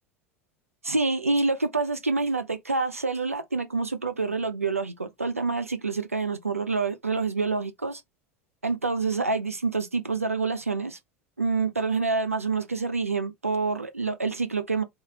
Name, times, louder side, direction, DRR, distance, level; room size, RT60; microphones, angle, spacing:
voice 1, 0.8-8.0 8.6-11.0 11.4-14.8, right 4 dB, 85° right, 0.4 m, -27 dB
3.2 x 2.4 x 2.6 m
figure-of-eight pair, 80°, 7 cm